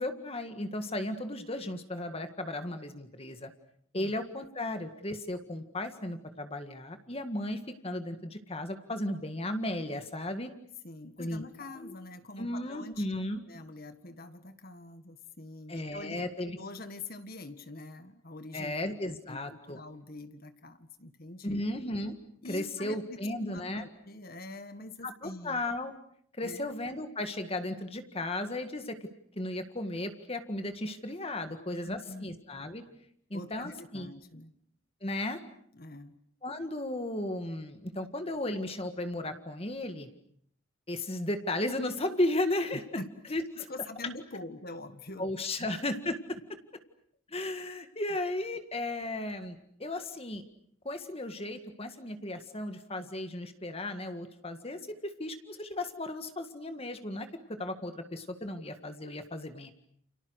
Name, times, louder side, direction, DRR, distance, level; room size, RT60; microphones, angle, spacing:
voice 1, 0.0-3.5 3.9-10.5 11.2-11.4 11.8-11.9 12.4-13.4 15.7-16.6 18.5-19.8 21.4-22.2 22.5-23.8 25.0-25.9 26.4-29.1 29.4-32.8 33.3-34.1 35.0-35.4 36.4-40.1 40.9-42.8 43.3-43.7 45.2-46.4 47.3-50.4 50.9-59.7, left 1 dB, 30° left, 8 dB, 1.8 m, -35 dB
voice 2, 10.8-13.1 13.5-16.2 16.5-21.6 22.4-25.6 26.4-26.7 31.4-32.4 33.3-34.6 35.7-36.2 42.7-45.3 45.6-45.7, left 2 dB, 45° left, 9 dB, 1.7 m, -45 dB
29.5 x 29.0 x 6.4 m, 0.64 s
head